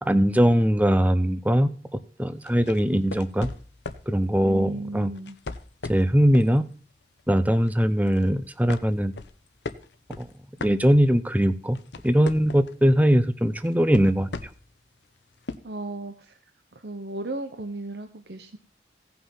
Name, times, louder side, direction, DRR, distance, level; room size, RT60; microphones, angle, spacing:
voice 1, 0.0-1.7 2.2-3.5 4.1-5.1 5.9-6.6 7.3-9.1 10.2-10.3 10.6-11.8 12.0-14.3, equal, 10° right, 12 dB, 0.7 m, -21 dB
sound 1, 2.4-4.1 5.1-6.6 7.0-7.2 7.6-8.3 8.7-11.3 11.6-12.8 13.6-14.7 15.5-15.6, left 3 dB, 80° left, 0.9 m, -37 dB
voice 2, 4.4-5.4 15.6-16.3 16.7-18.6, right 2 dB, 70° right, 6 dB, 1.0 m, -35 dB
16.5 x 5.8 x 5.7 m, 0.42 s
head